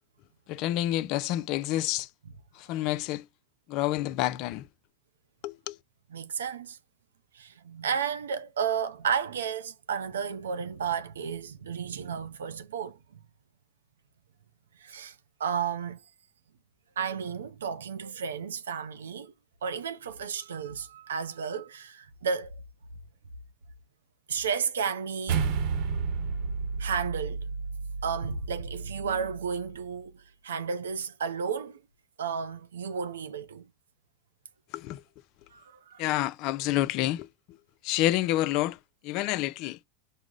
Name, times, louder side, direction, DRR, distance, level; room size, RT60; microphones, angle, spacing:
voice 1, 0.5-2.1 2.6-3.3 3.7-4.7 5.4-5.8 34.7-35.0 36.0-37.3 37.8-38.8 39.0-39.8, left 15 dB, 55° left, 0.3 m, -28 dB
voice 2, 6.1-6.8 7.3-13.0 14.8-16.0 17.0-19.3 19.6-22.5 24.3-25.4 26.8-27.5 28.0-31.8 32.2-33.7 35.5-36.0, right 6 dB, 90° right, 0.5 m, -33 dB
sound 1, 25.3-29.8, right 5 dB, 55° right, 0.8 m, -32 dB
4.8 x 2.0 x 3.7 m
hypercardioid pair, 105°, 0 cm